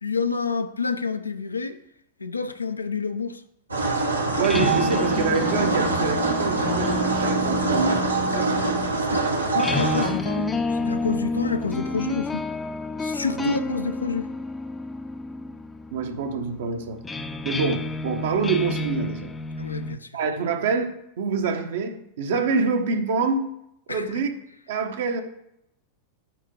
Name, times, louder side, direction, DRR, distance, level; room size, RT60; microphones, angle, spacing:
voice 1, 0.0-1.8 2.2-3.4 9.1-9.2 9.5-12.4 13.0-14.3 19.6-20.1 23.9-24.0, left 4 dB, 80° left, 8 dB, 0.7 m, -28 dB
sound 1, 3.7-10.1, right 3 dB, 80° right, 1.4 m, -24 dB
sound 2, 4.3-20.0, left 3 dB, 15° left, 0.6 m, -31 dB
voice 2, 4.4-8.0 8.3-8.5 13.4-13.6 15.9-17.0 17.4-19.3 20.1-23.5 23.9-24.3 24.7-25.2, right 4 dB, 55° right, 5 dB, 1.2 m, -26 dB
9.1 x 3.7 x 5.3 m, 0.79 s
figure-of-eight pair, 90°, 0 cm